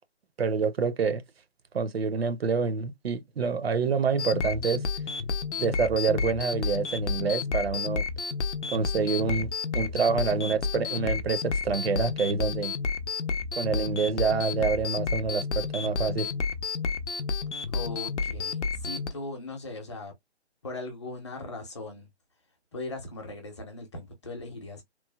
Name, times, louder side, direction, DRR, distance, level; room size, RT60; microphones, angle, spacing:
voice 1, 0.4-1.2 1.7-4.8 5.6-8.0 8.7-12.8 13.6-16.3, right 5 dB, 60° right, 0.5 m, -27 dB
sound 1, 4.2-19.1, left 4 dB, 90° left, 0.6 m, -31 dB
voice 2, 17.7-20.1 20.6-22.1 22.7-24.8, left 2 dB, 25° left, 0.6 m, -39 dB
3.1 x 2.1 x 2.2 m
figure-of-eight pair, 155°, 34 cm